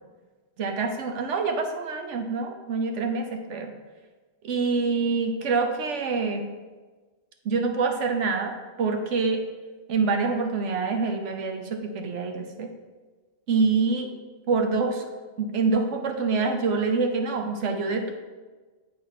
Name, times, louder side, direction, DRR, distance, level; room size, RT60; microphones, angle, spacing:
voice 1, 0.6-3.7 4.4-6.4 7.4-9.5 9.9-12.7 13.5-14.1 14.5-15.1 15.4-18.1, right 4 dB, 75° right, 4 dB, 1.1 m, -26 dB
7.7 x 3.9 x 5.8 m, 1.3 s
omnidirectional pair, 1.3 m